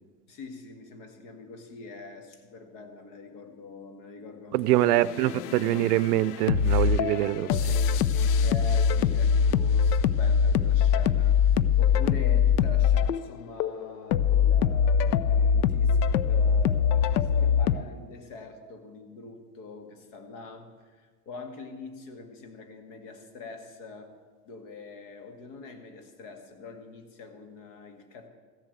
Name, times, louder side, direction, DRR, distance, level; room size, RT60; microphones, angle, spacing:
voice 1, 0.3-5.1 8.4-24.1 24.5-28.3, left 3 dB, 50° left, 5 dB, 2.0 m, -43 dB
voice 2, 4.5-7.7, right 17 dB, 80° right, 19 dB, 0.6 m, -24 dB
sound 1, 5.0-17.8, left 7 dB, 80° left, 0.7 m, -23 dB
14.5 x 7.2 x 8.4 m, 1.5 s
supercardioid pair, 170°, 46 cm